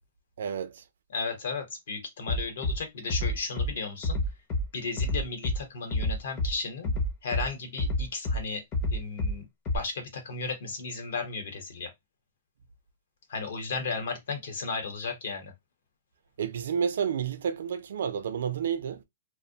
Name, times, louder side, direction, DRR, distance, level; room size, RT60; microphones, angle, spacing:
voice 1, 0.4-0.8 16.4-19.0, right 7 dB, 60° right, 0.4 m, -30 dB
voice 2, 1.1-4.2 4.7-6.9 7.2-8.6 8.9-9.4 9.7-11.9 13.3-15.5, left 4 dB, 55° left, 0.9 m, -34 dB
Bass drum, 2.3-2.8 3.1-3.7 4.0-4.6 5.0-5.6 5.9-6.5 6.8-7.4 7.8-8.4 8.7-9.3 9.6-9.8, left 1 dB, 20° left, 0.5 m, -27 dB
2.5 x 2.1 x 2.7 m
hypercardioid pair, 175°, 0 cm